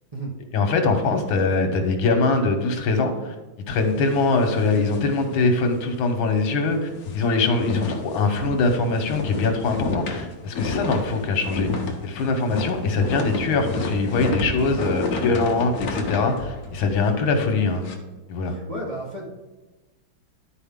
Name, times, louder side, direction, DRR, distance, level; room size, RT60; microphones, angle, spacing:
voice 1, 0.5-3.3 3.7-11.7 12.0-17.9 18.3-18.5, left 3 dB, 85° left, 6 dB, 1.8 m, -22 dB
sound 1, 3.7-6.0 6.3-6.4 6.8-17.9, left 3 dB, 55° left, 1.2 m, -31 dB
voice 2, 18.4-19.3, right 1 dB, 25° right, -4 dB, 0.9 m, -33 dB
11.0 x 4.5 x 3.6 m, 1.1 s
omnidirectional pair, 2.1 m